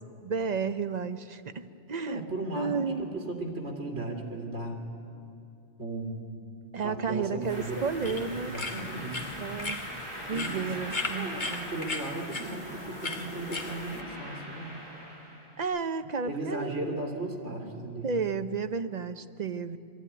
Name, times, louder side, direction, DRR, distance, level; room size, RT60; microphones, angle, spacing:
voice 1, 0.2-2.2 2.5-3.1 6.7-8.5 9.4-9.8 10.3-11.3 15.6-16.7 18.0-19.8, right 5 dB, 45° right, 10 dB, 0.7 m, -32 dB
voice 2, 2.1-4.8 5.8-6.2 6.8-9.6 10.3-10.7 11.1-14.7 16.3-18.1, right 2 dB, 85° right, 1 dB, 2.7 m, -36 dB
sound 1, 7.4-14.0, left 3 dB, 45° left, 1.5 m, -38 dB
sound 2, 7.5-15.6, equal, 25° right, 3.8 m, -42 dB
22.5 x 13.5 x 9.6 m, 2.6 s
omnidirectional pair, 1.2 m